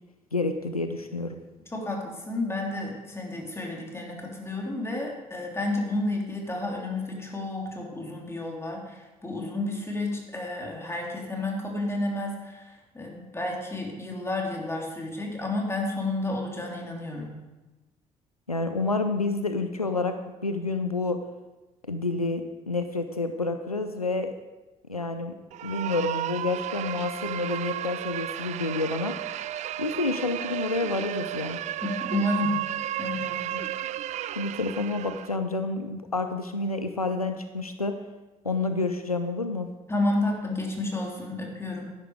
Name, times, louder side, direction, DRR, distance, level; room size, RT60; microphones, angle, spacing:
voice 1, 0.3-1.4 18.5-20.2 20.4-21.2 21.9-24.3 24.9-25.3 25.6-29.2 29.8-31.6 34.4-38.0 38.4-39.7, left 3 dB, 90° left, 8 dB, 0.5 m, -29 dB
voice 2, 1.7-12.7 12.9-17.3 31.8-32.6 33.0-33.6 39.9-41.9, left 2 dB, 15° left, 0 dB, 3.5 m, -31 dB
man screaming, 25.5-35.4, right 13 dB, 40° right, 0.4 m, -33 dB
12.0 x 10.5 x 5.0 m, 1.1 s
figure-of-eight pair, 50°, 18 cm